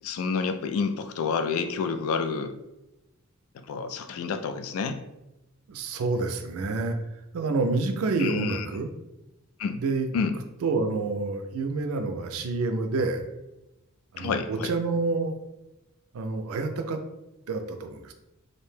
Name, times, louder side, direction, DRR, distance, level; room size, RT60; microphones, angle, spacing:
voice 1, 0.0-2.5 3.5-5.0 8.2-8.7 9.6-9.8 10.1-10.3 14.2-14.7, left 5 dB, 80° left, 9 dB, 0.3 m, -29 dB
voice 2, 5.7-7.0 7.3-8.9 9.8-10.1 10.6-13.3 14.1-15.3 16.1-17.0 17.5-18.1, right 3 dB, 80° right, 7 dB, 0.4 m, -28 dB
2.6 x 2.1 x 3.2 m, 0.95 s
head